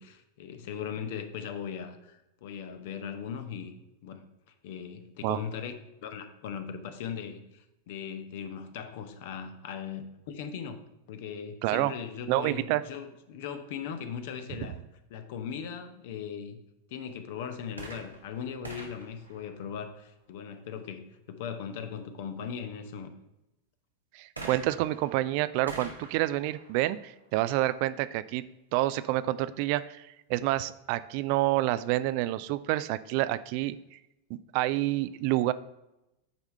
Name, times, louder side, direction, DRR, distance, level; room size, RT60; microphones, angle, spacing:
voice 1, 0.0-3.7 4.0-4.2 4.6-5.7 6.0-10.8 11.1-14.8 15.1-16.6 16.9-23.1, left 7 dB, 50° left, 9 dB, 0.8 m, -39 dB
voice 2, 11.6-11.9 12.3-12.8 24.1-28.4 28.7-34.0 34.3-35.5, right 16 dB, 45° right, 14 dB, 0.3 m, -28 dB
sound 1, 17.7-20.3 24.4-28.0 28.8-28.9, right 2 dB, 85° right, 1.4 m, -46 dB
9.1 x 3.5 x 5.4 m, 0.91 s
figure-of-eight pair, 90°, 0 cm